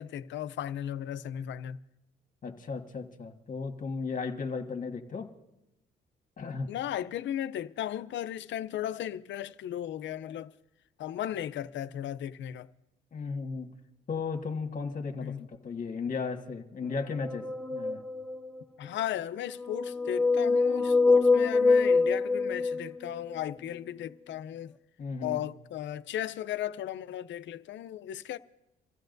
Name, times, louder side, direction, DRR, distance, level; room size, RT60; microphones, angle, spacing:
voice 1, 0.0-1.8 6.7-10.5 11.0-12.7 15.2-15.5 18.8-24.7 25.2-28.4, left 11 dB, 70° left, 0.6 m, -36 dB
voice 2, 2.4-5.3 6.4-6.7 13.1-13.7 14.1-17.4 17.7-18.0 25.0-25.4, left 4 dB, 45° left, 1.6 m, -35 dB
sound 1, 17.0-18.6 19.5-23.4, left 4 dB, 5° left, 0.5 m, -25 dB
27.5 x 14.5 x 2.6 m
cardioid pair, 90°, 20 cm